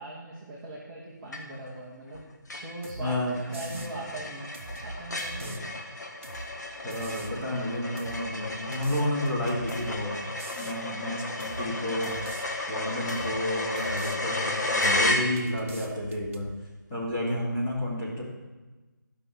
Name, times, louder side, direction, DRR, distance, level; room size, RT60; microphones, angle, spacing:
voice 1, 0.0-2.2 2.6-4.5 4.8-5.8 10.6-10.7, right 1 dB, 5° right, -7 dB, 0.6 m, -40 dB
sound 1, 1.3-1.8 2.1-2.2 2.5-15.8, left 2 dB, 60° left, 1.6 m, -33 dB
sound 2, 2.8-3.1 3.5-3.9 4.5-5.6 6.2-6.5 6.9-7.4 8.0-8.2 8.7-9.9 10.4-10.8 11.4-11.7 12.0-12.4 13.1-13.4 13.7-14.2 14.8-15.1 15.4-16.5, right 2 dB, 40° right, 0.9 m, -43 dB
voice 2, 3.0-3.8 5.4-5.5 6.8-10.1 10.6-12.4 12.7-16.5 16.9-18.2, left 1 dB, 15° left, -9 dB, 2.6 m, -31 dB
12.5 x 5.7 x 6.7 m, 1.2 s
figure-of-eight pair, 170°, 11 cm